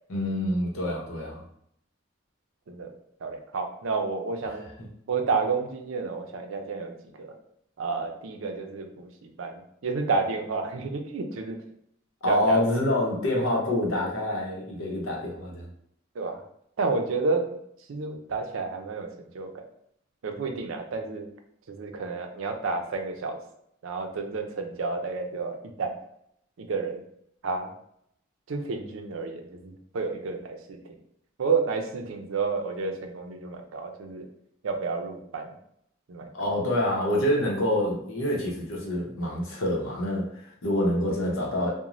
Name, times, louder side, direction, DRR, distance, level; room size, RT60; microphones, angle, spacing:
voice 1, 0.1-1.4 4.5-4.6 12.2-15.7 36.3-41.7, left 1 dB, 85° left, -1 dB, 0.7 m, -26 dB
voice 2, 3.2-4.6 5.1-7.3 7.8-11.6 12.3-12.6 16.2-16.4 16.8-17.6 17.9-19.1 19.3-19.6 20.2-21.3 21.7-23.4 23.8-25.9 26.6-27.0 27.4-27.7 28.5-30.8 31.4-34.3 34.6-35.5 36.1-36.5, right 4 dB, 75° right, 5 dB, 0.4 m, -30 dB
2.5 x 2.1 x 3.0 m, 0.72 s
head